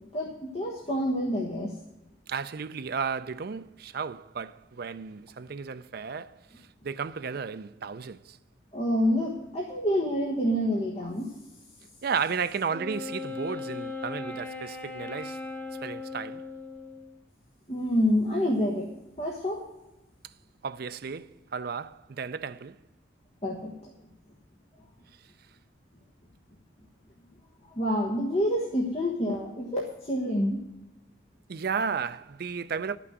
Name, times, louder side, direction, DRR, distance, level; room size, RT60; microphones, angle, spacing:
voice 1, 0.1-1.7 8.7-11.3 17.7-18.9 19.2-19.6 23.4-23.7 27.7-30.6, equal, 35° left, 1.4 m, -27 dB
voice 2, 2.3-6.4 6.8-8.4 12.0-15.4 15.8-16.4 20.6-22.8 31.5-33.0, right 6 dB, 50° right, 0.4 m, -33 dB
Wind instrument woodwind instrument, 12.7-17.2, left 3 dB, 10° left, 1.0 m, -38 dB
12.0 x 6.1 x 8.1 m
head